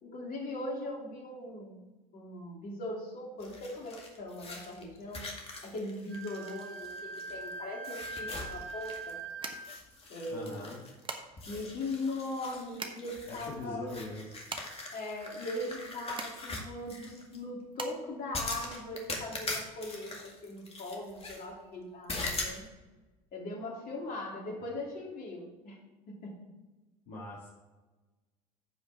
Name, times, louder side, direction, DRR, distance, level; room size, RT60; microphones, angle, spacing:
voice 1, 0.0-1.9 2.1-5.3 5.6-9.2 10.1-10.7 11.5-13.9 14.9-22.7 23.3-25.8 26.1-26.5, left 1 dB, 45° left, -1 dB, 2.9 m, -40 dB
sound 1, 3.4-7.5 7.8-9.2 9.5-11.0 11.4-17.4 18.3-21.4 22.1-22.6, left 3 dB, 30° left, 2.1 m, -42 dB
Wind instrument woodwind instrument, 6.1-9.8, right 3 dB, 45° right, 1.5 m, -42 dB
sound 2, 9.0-19.1, right 4 dB, 25° right, 1.2 m, -46 dB
voice 2, 10.3-10.8 13.3-14.6 27.1-27.5, left 2 dB, 65° left, -5 dB, 2.0 m, -42 dB
15.0 x 5.3 x 3.5 m, 1.2 s
hypercardioid pair, 70°, 20 cm